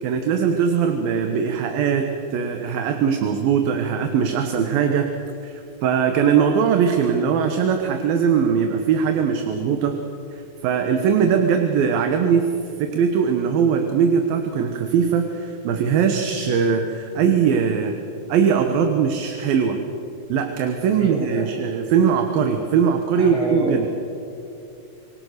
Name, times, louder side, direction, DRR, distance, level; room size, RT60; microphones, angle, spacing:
voice 1, 0.0-5.1 5.4-10.0 10.3-12.5 12.8-17.9 18.3-19.8 20.3-23.9, right 7 dB, 75° right, 5 dB, 3.0 m, -20 dB
voice 2, 20.9-21.4 23.2-23.9, right 1 dB, 50° right, -3 dB, 8.0 m, -29 dB
27.0 x 23.0 x 6.6 m, 2.7 s
omnidirectional pair, 4.2 m